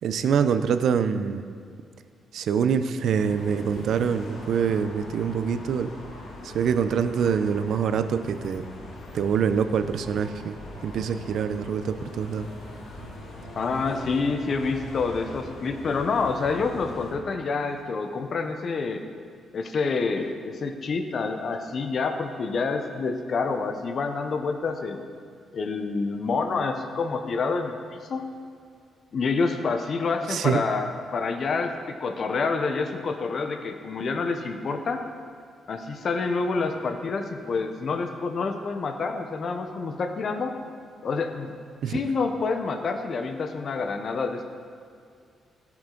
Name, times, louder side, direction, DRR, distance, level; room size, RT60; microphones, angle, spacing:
voice 1, 0.0-1.4 2.3-5.9 6.4-8.7 9.1-12.5 30.3-30.6 41.8-42.0, right 7 dB, 70° right, 11 dB, 0.5 m, -25 dB
sound 1, 3.1-17.1, left 1 dB, 80° left, 2.2 m, -41 dB
voice 2, 13.6-19.0 19.5-25.1 25.5-28.2 29.1-35.0 35.7-40.6 41.0-41.5 41.9-44.4, left 4 dB, 45° left, 6 dB, 0.7 m, -28 dB
17.0 x 6.0 x 3.8 m, 2.3 s
cardioid pair, 150°, 0 cm